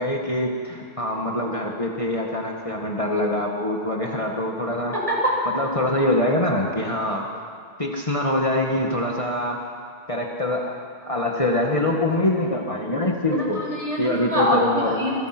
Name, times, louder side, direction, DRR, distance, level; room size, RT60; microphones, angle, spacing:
voice 1, 0.0-4.9 5.5-7.3 7.8-9.6 10.1-10.7 11.1-13.6 14.0-15.0, left 1 dB, 30° left, -1 dB, 1.9 m, -24 dB
voice 2, 4.9-5.4 13.3-14.6 14.9-15.3, equal, 30° right, -5 dB, 8.3 m, -24 dB
28.0 x 24.0 x 6.1 m, 2.2 s
omnidirectional pair, 1.1 m